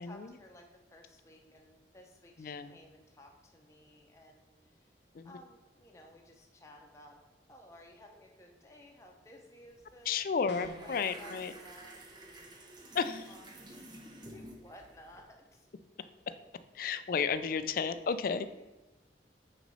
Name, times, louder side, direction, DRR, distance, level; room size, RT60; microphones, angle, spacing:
voice 1, 0.0-4.9 5.2-7.2 7.5-10.2 10.8-13.0 13.3-15.7 16.0-16.1 16.8-17.0 18.3-18.6, left 1 dB, 15° left, 1 dB, 0.8 m, -56 dB
voice 2, 2.4-2.8 5.1-5.3 10.1-11.5 12.9-13.3 16.8-18.5, left 6 dB, 50° left, 13 dB, 0.3 m, -32 dB
sound 1, 9.7-9.9 10.2-15.2, right 1 dB, 25° right, 0.7 m, -51 dB
sound 2, 10.5-11.0, left 1 dB, 70° left, 0.7 m, -46 dB
6.0 x 4.0 x 5.4 m, 1.1 s
head